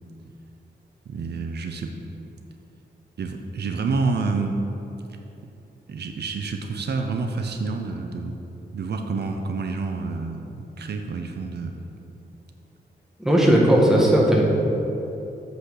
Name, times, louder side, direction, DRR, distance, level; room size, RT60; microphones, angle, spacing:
voice 1, 1.1-1.9 3.2-4.6 5.9-11.7, right 4 dB, 75° right, 4 dB, 0.7 m, -28 dB
voice 2, 13.2-14.4, right 1 dB, 5° right, -3 dB, 1.6 m, -17 dB
8.0 x 6.3 x 6.6 m, 3.0 s
wide cardioid pair, 125°, 17 cm